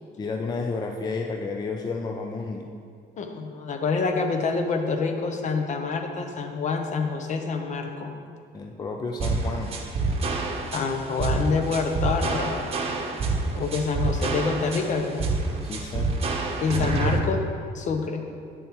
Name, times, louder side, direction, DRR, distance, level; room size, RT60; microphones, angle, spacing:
voice 1, 0.2-2.7 8.5-9.8 15.6-16.1 16.7-17.2, left 4 dB, 25° left, 3 dB, 0.4 m, -31 dB
voice 2, 3.2-8.1 10.7-12.7 13.5-15.3 16.6-17.4 17.7-18.2, left 4 dB, 45° left, 5 dB, 0.7 m, -27 dB
sound 1, 9.2-17.2, right 3 dB, 35° right, 0.9 m, -27 dB
8.7 x 6.8 x 3.0 m, 2.3 s
cardioid pair, 110°, 17 cm